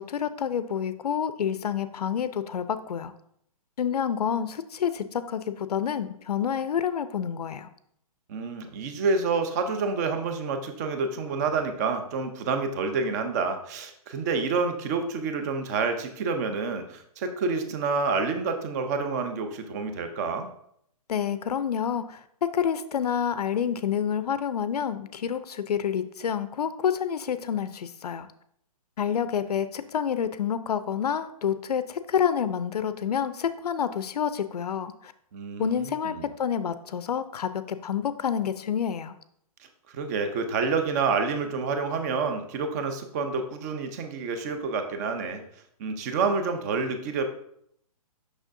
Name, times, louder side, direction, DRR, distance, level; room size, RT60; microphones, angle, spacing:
voice 1, 0.0-3.1 3.8-7.7 21.1-28.3 29.0-35.1 35.6-39.2, left 8 dB, 85° left, 12 dB, 0.5 m, -28 dB
voice 2, 8.3-20.5 35.3-36.3 39.6-45.4 45.8-47.2, right 4 dB, 25° right, 7 dB, 0.6 m, -28 dB
6.3 x 6.1 x 2.6 m, 0.70 s
hypercardioid pair, 155°, 20 cm